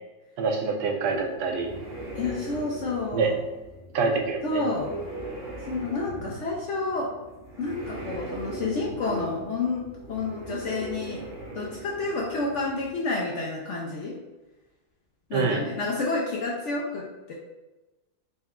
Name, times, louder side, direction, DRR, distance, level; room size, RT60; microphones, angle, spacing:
voice 1, 0.4-1.7 3.1-3.3 3.9-4.6 15.3-15.7, right 4 dB, 85° right, 2 dB, 1.2 m, -26 dB
sound 1, 1.1-12.9, right 2 dB, 45° right, 0.9 m, -39 dB
voice 2, 2.2-3.3 4.4-4.9 5.7-7.1 7.6-11.2 11.5-14.2 15.3-17.3, left 3 dB, 70° left, -3 dB, 0.7 m, -30 dB
4.0 x 2.2 x 3.5 m, 1.1 s
omnidirectional pair, 1.7 m